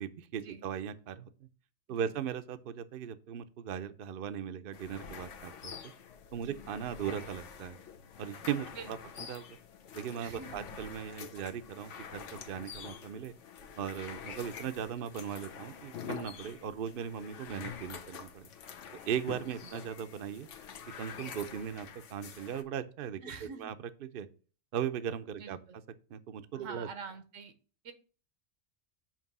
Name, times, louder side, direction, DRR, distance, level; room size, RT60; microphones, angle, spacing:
voice 1, 0.0-1.5 1.9-5.8 6.3-7.8 8.2-9.0 9.3-9.5 9.9-13.3 13.8-18.5 19.1-20.5 21.0-23.2 23.6-23.7 24.0-24.3 24.7-25.6 26.1-26.9, right 8 dB, 60° right, 10 dB, 0.7 m, -38 dB
sound 1, 4.7-22.6, left 7 dB, 80° left, 1.1 m, -47 dB
voice 2, 8.7-9.3 10.2-10.7 14.6-14.7 19.6-19.7 23.2-23.7 25.3-25.8 26.5-27.5 27.8-27.9, right 5 dB, 90° right, 9 dB, 1.3 m, -46 dB
7.2 x 3.0 x 5.9 m, 0.38 s
omnidirectional pair, 1.2 m